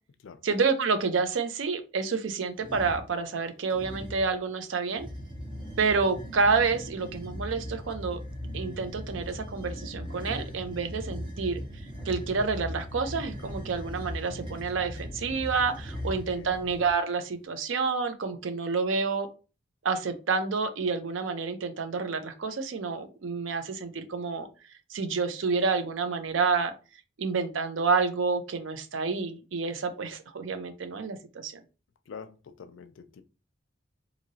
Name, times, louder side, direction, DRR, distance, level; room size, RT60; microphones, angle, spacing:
voice 1, 0.4-5.1 5.8-8.2 8.5-11.6 12.1-19.3 19.8-24.5 24.9-26.7 27.2-31.5, right 4 dB, 80° right, 0.5 m, -29 dB
sound 1, 2.6-3.1 3.7-4.3 4.9-16.9, equal, 25° right, 0.6 m, -39 dB
voice 2, 16.0-16.6 32.1-33.2, left 6 dB, 75° left, 0.4 m, -46 dB
2.9 x 2.7 x 2.7 m
head